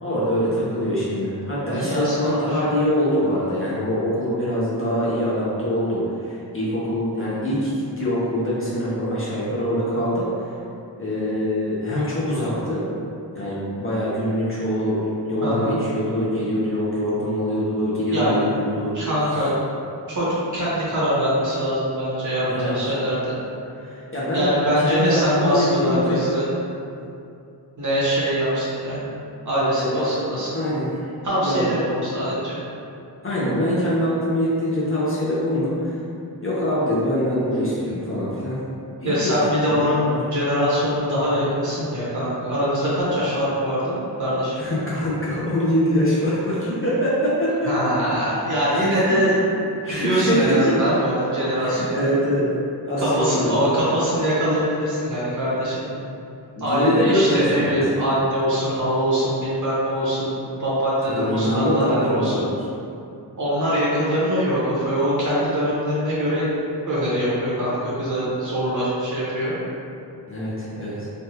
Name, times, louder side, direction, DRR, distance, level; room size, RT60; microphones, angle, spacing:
voice 1, 0.0-10.6 11.0-12.9 13.3-18.9 22.4-22.8 23.8-24.5 24.8-26.2 29.8-30.1 30.5-31.0 31.4-31.7 33.2-36.0 36.4-38.6 39.0-39.3 39.8-40.2 44.6-47.7 48.7-49.2 49.8-50.7 51.6-52.5 52.9-53.6 56.6-57.8 61.1-62.6 70.3-71.1, equal, 30° left, -8 dB, 0.6 m, -24 dB
voice 2, 1.7-2.6 15.4-15.8 17.2-17.3 18.1-18.3 18.9-19.5 20.1-23.4 24.3-26.5 27.8-29.1 29.4-30.5 31.2-32.6 39.0-40.1 40.3-44.8 47.6-49.4 49.9-52.0 53.0-55.9 56.6-62.5 63.4-66.5 66.8-69.5, equal, 45° right, -9 dB, 1.0 m, -23 dB
3.3 x 2.3 x 2.7 m, 2.6 s
wide cardioid pair, 135°, 41 cm